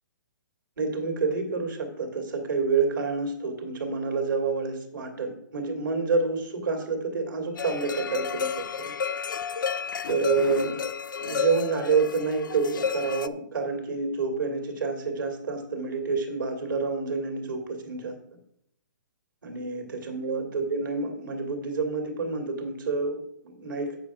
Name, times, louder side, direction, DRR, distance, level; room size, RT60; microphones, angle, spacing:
voice 1, 0.8-8.9 10.1-10.8 11.2-18.2 19.4-24.0, right 4 dB, 85° right, 5 dB, 2.5 m, -28 dB
sound 1, 7.6-13.3, left 6 dB, 85° left, 0.5 m, -31 dB
8.0 x 7.5 x 4.8 m, 0.74 s
hypercardioid pair, 155°, 11 cm